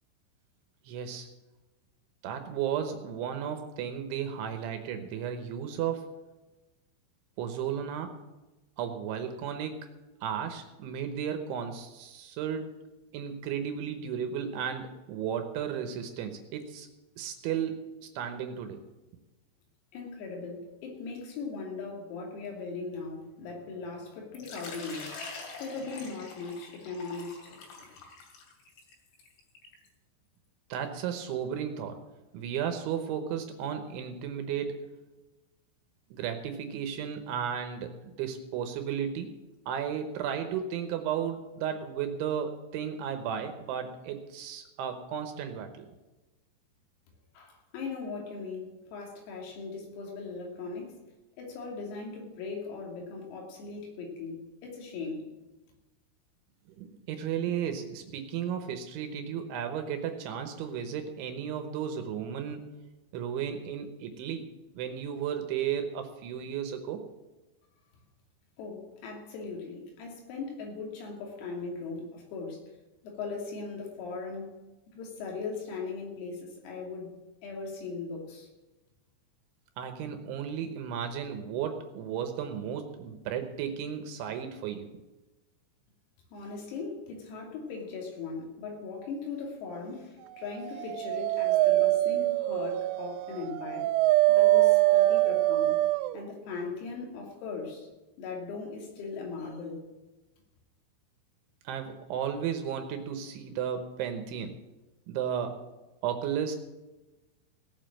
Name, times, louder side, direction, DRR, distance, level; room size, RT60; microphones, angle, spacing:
voice 1, 0.9-1.3 2.2-6.1 7.4-8.2 8.8-9.9 10.2-12.8 13.1-16.9 17.2-17.8 18.2-18.8 30.7-32.0 32.3-34.9 36.1-39.3 39.7-45.9 56.7-62.7 63.1-64.4 64.7-67.0 79.8-84.9 101.7-104.5 105.1-105.6 106.0-106.6, right 8 dB, 75° right, 6 dB, 3.2 m, -34 dB
voice 2, 19.9-28.0 47.4-51.0 51.4-55.3 68.6-72.6 73.0-74.5 74.9-77.1 77.4-78.5 86.3-93.9 94.3-95.8 96.1-97.9 98.2-99.8, left 4 dB, 90° left, 0 dB, 5.5 m, -39 dB
Water / Liquid, 24.3-29.9, left 4 dB, 65° left, 4.7 m, -45 dB
Dog, 90.6-96.2, right 17 dB, 90° right, 3.3 m, -24 dB
17.5 x 7.4 x 7.6 m, 1.1 s
omnidirectional pair, 5.9 m